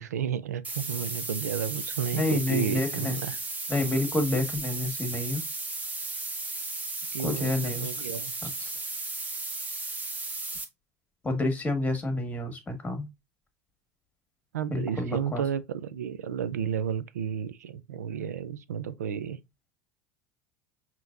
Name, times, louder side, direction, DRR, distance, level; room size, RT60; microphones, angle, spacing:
voice 1, 0.0-3.4 7.1-8.5 14.5-19.4, right 8 dB, 90° right, 0.4 m, -32 dB
sound 1, 0.6-10.6, right 3 dB, 20° right, 1.1 m, -35 dB
voice 2, 2.1-3.2 3.7-5.4 7.2-7.9 8.4-8.7 11.2-13.1 14.7-15.4, left 1 dB, 15° left, 1.7 m, -29 dB
5.6 x 3.0 x 2.5 m
hypercardioid pair, 80°, 8 cm